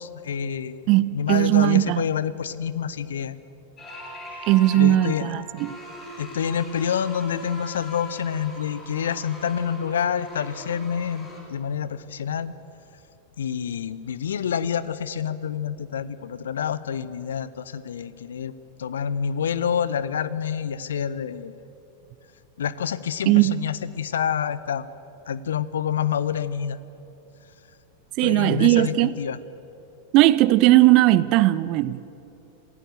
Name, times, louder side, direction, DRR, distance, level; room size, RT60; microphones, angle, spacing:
voice 1, 0.0-3.4 4.7-5.3 6.2-12.5 13.4-18.5 18.8-21.6 22.6-24.9 25.3-26.8 28.2-29.4, left 8 dB, 65° left, 0.7 m, -27 dB
voice 2, 0.9-2.0 4.5-5.8 23.3-23.6 28.2-29.1 30.1-32.1, right 16 dB, 40° right, 0.7 m, -18 dB
sound 1, 3.8-11.4, equal, 25° left, 6.5 m, -40 dB
27.0 x 16.0 x 6.8 m
figure-of-eight pair, 90°, 0 cm